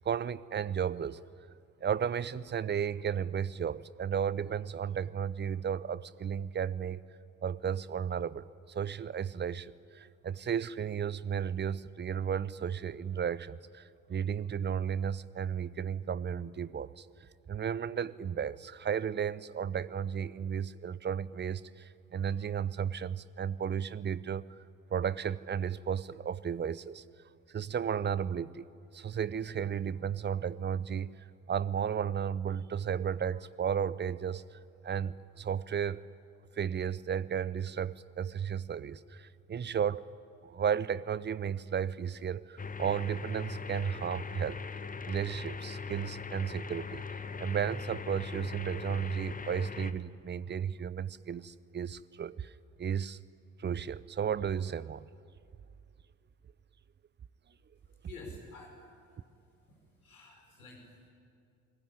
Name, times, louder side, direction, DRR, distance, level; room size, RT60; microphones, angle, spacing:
voice 1, 0.0-1.2 1.8-7.0 7.4-17.1 17.5-24.5 24.9-27.0 27.5-28.7 28.9-31.1 31.5-36.0 36.6-40.0 40.4-44.6 45.1-47.0 47.4-52.5 52.8-53.2 53.6-55.1, right 8 dB, 25° right, 19 dB, 0.8 m, -34 dB
sound 1, 42.6-49.9, left 5 dB, 20° left, 1.3 m, -40 dB
voice 2, 58.0-58.9 59.7-61.1, left 4 dB, 80° left, 1 dB, 5.1 m, -50 dB
28.0 x 19.5 x 9.9 m, 2.4 s
figure-of-eight pair, 50°, 43 cm